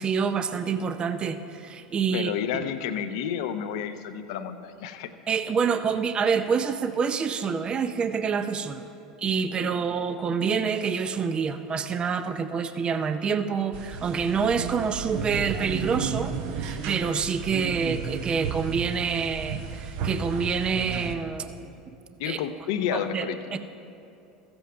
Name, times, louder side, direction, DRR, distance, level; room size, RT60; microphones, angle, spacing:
voice 1, 0.0-2.6 5.3-8.9 9.2-21.7 22.1-22.4 22.9-23.6, right 6 dB, 30° right, 10 dB, 0.5 m, -27 dB
voice 2, 2.1-5.1 22.2-23.6, left 8 dB, 70° left, 9 dB, 0.7 m, -30 dB
sound 1, 13.7-21.1, right 6 dB, 65° right, 0.8 m, -33 dB
14.5 x 7.9 x 4.6 m, 2.7 s
hypercardioid pair, 85°, 3 cm